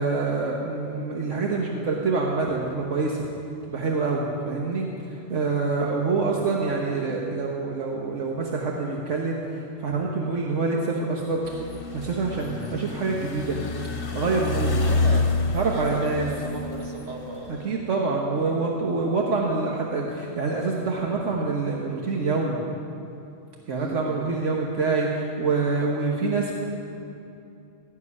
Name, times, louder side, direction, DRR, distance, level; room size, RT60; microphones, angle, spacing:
voice 1, 0.0-3.2 3.7-11.4 11.9-13.6 14.1-14.9 15.5-16.3 17.5-22.6 23.7-26.5, right 3 dB, 75° right, -1 dB, 1.5 m, -26 dB
sound 1, 11.4-17.7, left 3 dB, 50° left, 1.2 m, -28 dB
voice 2, 14.8-15.3 15.7-17.6 23.7-24.2, right 2 dB, 60° right, 1 dB, 1.9 m, -37 dB
17.0 x 7.4 x 9.7 m, 2.8 s
omnidirectional pair, 1.3 m